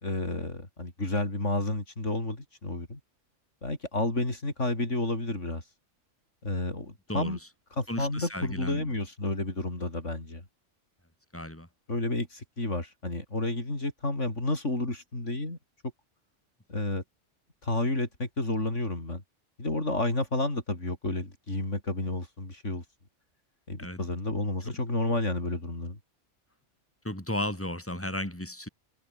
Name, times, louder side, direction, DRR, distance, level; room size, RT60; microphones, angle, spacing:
voice 1, 0.0-3.0 3.6-5.6 6.4-7.4 7.8-10.4 11.9-15.6 16.7-17.0 17.6-19.2 19.6-22.8 23.7-26.0, left 2 dB, 80° left, 5.8 m, -31 dB
voice 2, 7.9-8.9 11.3-11.7 23.8-24.0 27.0-28.7, left 1 dB, 10° left, 5.2 m, -34 dB
omnidirectional pair, 1.2 m